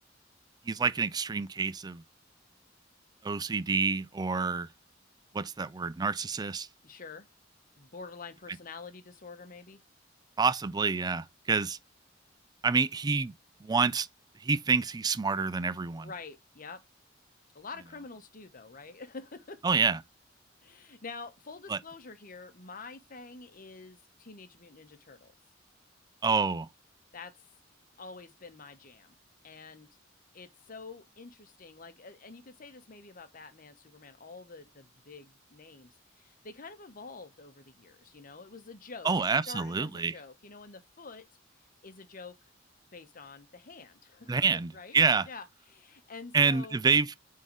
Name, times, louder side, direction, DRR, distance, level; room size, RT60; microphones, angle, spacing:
voice 1, 0.7-2.0 3.2-4.7 5.3-6.7 10.4-11.8 12.6-13.3 13.6-14.1 14.4-16.1 19.6-20.0 21.7-21.8 26.2-26.7 39.0-40.1 44.3-45.3 46.3-47.1, right 5 dB, 20° right, 0.4 m, -27 dB
voice 2, 6.8-7.3 7.7-9.8 15.9-16.8 17.5-19.6 20.6-25.3 27.1-27.3 28.0-29.1 29.4-29.9 30.3-39.1 39.5-41.3 41.8-42.3 42.9-45.0 45.2-46.8, left 4 dB, 45° left, 1.0 m, -47 dB
9.1 x 3.8 x 3.0 m
head